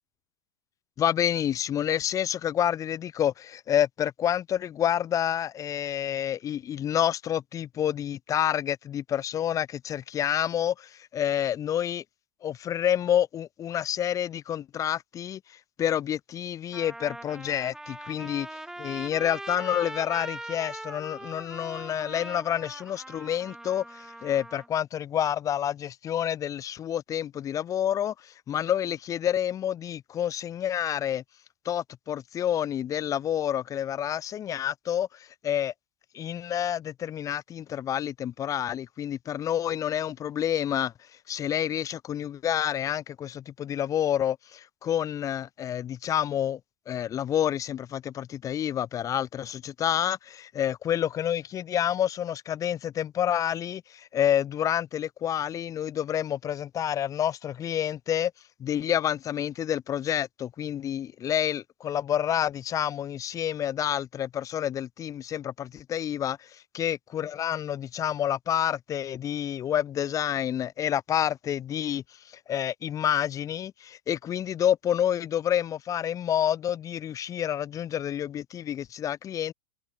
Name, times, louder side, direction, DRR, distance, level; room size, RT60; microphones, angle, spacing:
voice 1, 1.0-12.0 12.4-31.2 31.7-35.7 36.1-40.9 41.3-46.6 46.9-58.3 58.6-79.5, left 10 dB, 30° left, 2.1 m, -28 dB
Trumpet, 16.0-16.1 16.7-24.7, right 1 dB, 5° right, 4.4 m, -41 dB
figure-of-eight pair, 100°, 12 cm